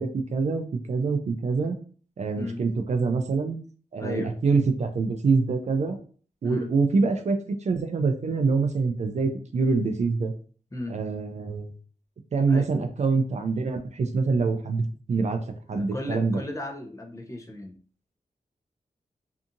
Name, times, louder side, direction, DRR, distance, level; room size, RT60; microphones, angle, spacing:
voice 1, 0.0-1.8 2.2-3.6 3.9-6.0 6.4-10.3 10.9-11.7 12.3-15.4 15.7-16.4, right 4 dB, 50° right, 7 dB, 0.4 m, -25 dB
voice 2, 4.0-4.3 6.4-6.7 10.7-11.0 12.5-12.7 15.7-17.8, left 2 dB, 20° left, 1 dB, 0.6 m, -35 dB
2.7 x 2.4 x 2.5 m, 0.42 s
wide cardioid pair, 85°, 15 cm